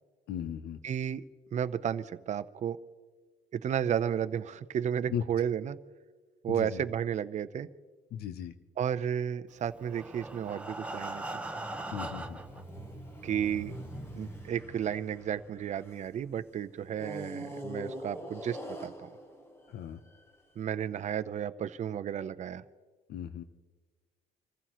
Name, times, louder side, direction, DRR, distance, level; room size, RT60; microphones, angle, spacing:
voice 1, 0.3-0.8 5.1-5.2 6.5-6.8 8.1-8.5 11.9-12.4 19.7-20.0 23.1-23.4, left 9 dB, 70° left, 10 dB, 0.8 m, -36 dB
voice 2, 0.8-1.2 1.5-2.8 3.5-5.8 6.4-7.7 8.8-11.4 13.2-13.8 14.2-19.1 20.6-22.6, right 9 dB, 45° right, 12 dB, 0.7 m, -33 dB
Breathing, 9.7-12.6 13.4-13.5 13.9-14.0 14.4-14.5, right 2 dB, 10° right, 1.2 m, -40 dB
sound 1, 11.5-16.2 16.9-20.3, right 1 dB, 15° left, 1.6 m, -44 dB
27.0 x 15.0 x 3.1 m, 1.3 s
cardioid pair, 110°, 17 cm